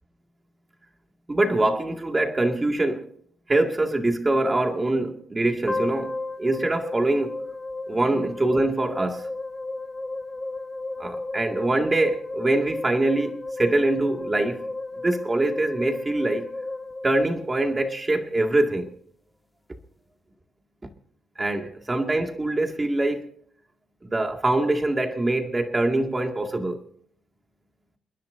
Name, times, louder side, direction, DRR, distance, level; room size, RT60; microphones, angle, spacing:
voice 1, 1.3-3.1 3.5-7.4 7.9-9.3 11.0-14.6 15.0-16.5 17.0-18.9 20.8-20.9 21.4-23.3 24.0-26.8, right 2 dB, 20° right, 2.2 m, -24 dB
sound 1, 5.7-17.9, left 2 dB, 15° left, 1.3 m, -34 dB
30.0 x 10.5 x 2.7 m
cardioid pair, 90°, 0 cm